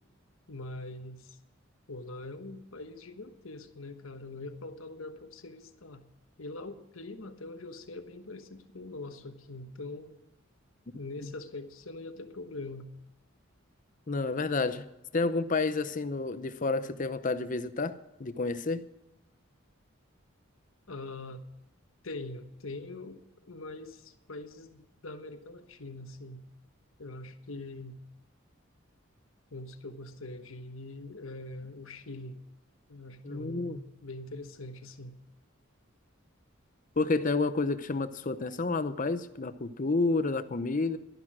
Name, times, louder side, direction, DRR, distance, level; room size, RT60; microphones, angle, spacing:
voice 1, 0.5-1.4 1.9-6.0 6.4-10.1 10.9-12.9 20.9-21.4 22.0-26.4 27.0-28.0 29.5-32.4 32.9-35.1, left 2 dB, 85° left, 8 dB, 1.2 m, -43 dB
voice 2, 14.1-14.9 15.1-18.8 33.2-33.8 37.0-41.0, left 3 dB, 40° left, 12 dB, 0.7 m, -30 dB
12.0 x 11.0 x 6.1 m, 0.91 s
head